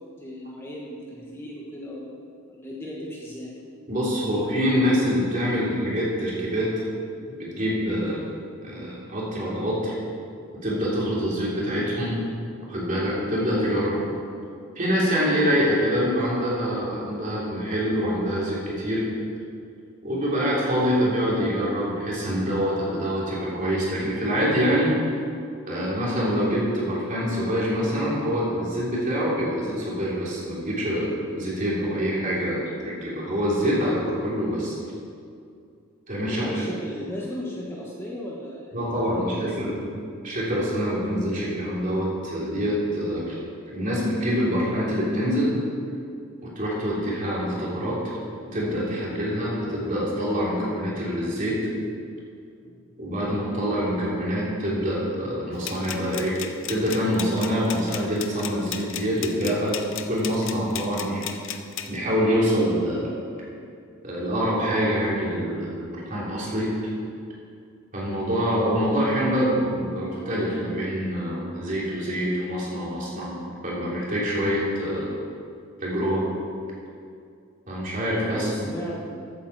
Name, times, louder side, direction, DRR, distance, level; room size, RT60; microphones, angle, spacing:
voice 1, 0.2-2.1 2.5-3.5 36.3-39.7 52.6-52.8 78.3-79.0, left 1 dB, 10° left, -4 dB, 1.3 m, -36 dB
voice 2, 3.9-6.7 7.4-8.2 8.6-9.9 10.6-12.2 12.7-14.0 14.7-19.0 20.0-24.9 25.6-34.7 36.1-36.5 38.7-39.8 40.2-43.4 43.7-45.5 46.4-48.0 48.5-51.6 53.0-56.4 56.7-59.8 60.1-61.2 61.9-63.1 64.0-66.9 67.9-73.3 73.6-75.1 75.8-76.3 77.7-78.7, equal, 40° right, -6 dB, 3.2 m, -25 dB
sound 1, 55.6-62.0, left 9 dB, 60° left, 0.7 m, -36 dB
14.0 x 8.7 x 4.7 m, 2.4 s
head